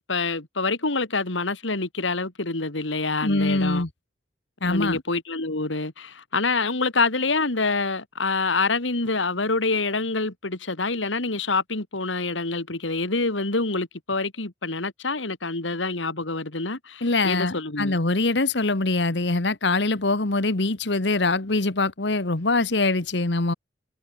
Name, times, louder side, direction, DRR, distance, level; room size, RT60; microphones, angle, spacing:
voice 1, 0.0-3.9 4.6-18.0, left 3 dB, 90° left, 2.6 m, -26 dB
voice 2, 3.2-3.9 4.6-5.0 17.0-23.5, left 2 dB, 70° left, 1.5 m, -23 dB
head